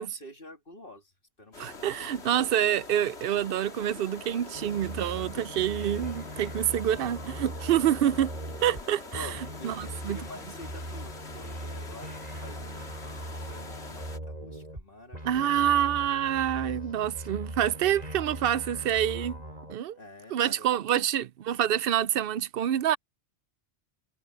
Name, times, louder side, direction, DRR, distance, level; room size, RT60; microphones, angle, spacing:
voice 1, 0.0-2.7 6.6-7.1 9.1-15.6 19.9-21.3, left 1 dB, 55° left, 2.9 m, -48 dB
sound 1, 1.5-14.2, left 4 dB, 75° left, 2.3 m, -45 dB
voice 2, 1.6-8.3 8.6-9.3 9.6-10.2 15.2-19.4 19.7-20.0 20.3-23.0, right 10 dB, 65° right, 0.7 m, -27 dB
sound 2, 4.5-8.8 9.1-14.8 15.1-19.7, right 1 dB, 35° right, 3.3 m, -40 dB
omnidirectional pair, 1.1 m